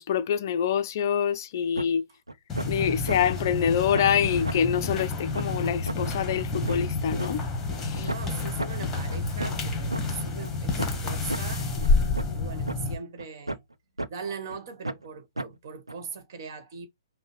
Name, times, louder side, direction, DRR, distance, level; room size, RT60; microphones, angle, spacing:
voice 1, 0.0-2.0 2.6-7.4 7.8-8.1, left 8 dB, 45° left, 0.4 m, -26 dB
sound 1, 1.8-1.9 2.3-2.7 3.1-3.2 3.6-3.7 3.9-4.1 4.4-4.6 5.0-5.1 5.3-5.5 5.9-6.0 6.4-7.3 7.7-7.8 8.1-8.2 8.6-8.7 9.1-10.0 10.4-10.5 10.8-11.0 11.3-11.4 11.8-11.9 12.1-12.4 12.7-12.8 13.2-13.7 14.0-14.1 14.5-14.6 14.8-15.1 15.4-15.5 15.9-16.0, right 2 dB, 90° right, 0.5 m, -32 dB
sound 2, 2.5-12.9, left 3 dB, 15° left, 1.2 m, -29 dB
voice 2, 7.9-13.6 14.1-16.9, right 5 dB, 45° right, 1.3 m, -40 dB
5.3 x 2.1 x 3.2 m
figure-of-eight pair, 125°, 2 cm